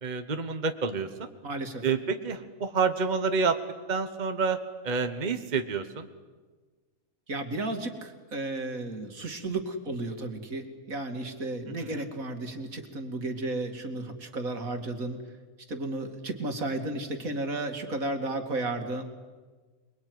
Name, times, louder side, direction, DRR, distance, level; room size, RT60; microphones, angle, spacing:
voice 1, 0.0-1.3 1.8-3.6 3.9-4.6 4.8-6.1 11.8-12.0, right 5 dB, 35° right, 7 dB, 1.3 m, -28 dB
voice 2, 1.4-1.8 7.3-15.2 15.7-19.0, right 2 dB, 70° right, 5 dB, 2.8 m, -33 dB
27.5 x 21.5 x 9.5 m, 1.4 s
omnidirectional pair, 1.5 m